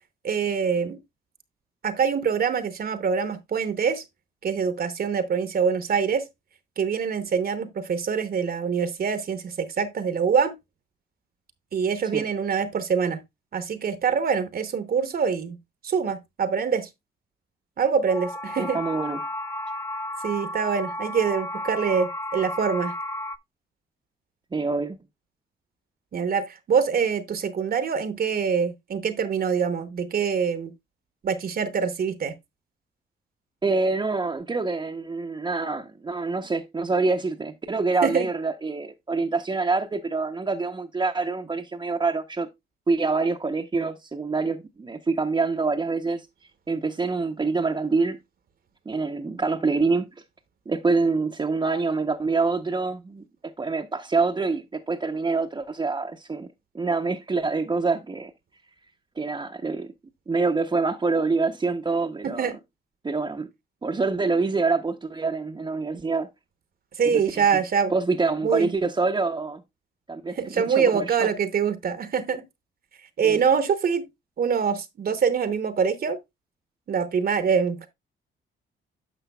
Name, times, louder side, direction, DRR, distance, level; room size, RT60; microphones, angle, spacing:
voice 1, 0.2-1.0 1.8-4.0 4.4-6.3 6.8-10.5 11.7-13.2 13.5-15.6 15.8-16.9 17.8-18.8 20.2-22.9 26.1-30.7 31.2-32.3 38.0-38.3 62.2-62.6 67.0-67.9 68.4-68.7 70.3-72.4 73.2-74.1 74.4-76.2 76.9-77.9, right 6 dB, 50° right, 0.9 m, -24 dB
sound 1, 18.1-23.4, left 1 dB, 15° left, 0.4 m, -33 dB
voice 2, 18.6-19.2 24.5-25.0 33.6-42.5 42.9-46.3 46.7-48.2 48.9-50.1 50.7-56.5 56.7-58.3 59.2-59.9 60.3-62.5 63.0-63.5 63.8-66.3 67.1-67.2 67.9-69.6 70.1-71.1 73.2-73.4, right 3 dB, 20° right, 0.7 m, -26 dB
10.0 x 6.3 x 2.2 m
cardioid pair, 90°, 20 cm